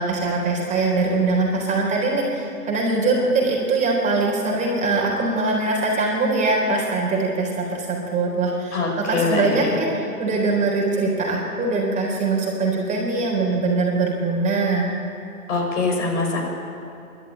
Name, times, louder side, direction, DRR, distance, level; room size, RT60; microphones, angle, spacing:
voice 1, 0.0-14.9, right 3 dB, 15° right, -2 dB, 4.0 m, -22 dB
voice 2, 8.7-9.8 15.5-16.4, left 3 dB, 55° left, 0 dB, 6.8 m, -23 dB
28.5 x 12.5 x 8.8 m, 2.8 s
figure-of-eight pair, 130°, 45 cm